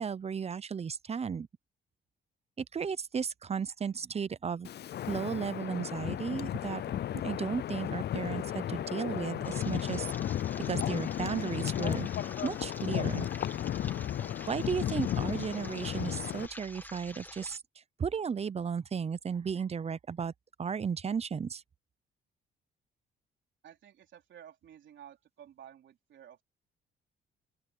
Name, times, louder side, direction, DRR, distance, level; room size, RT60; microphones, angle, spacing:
voice 1, 0.0-1.5 2.6-4.7 5.1-6.8 7.1-10.1 10.7-12.1 12.4-13.3 14.5-17.6 18.0-20.3 20.6-21.6, right 6 dB, 30° right, 0.7 m, -34 dB
Wind, 4.6-16.5, left 11 dB, 55° left, 0.6 m, -34 dB
sound 1, 9.4-17.6, left 1 dB, 10° left, 2.2 m, -48 dB
voice 2, 23.6-26.4, right 10 dB, 70° right, 3.8 m, -53 dB
open air
cardioid pair, 90°, 20 cm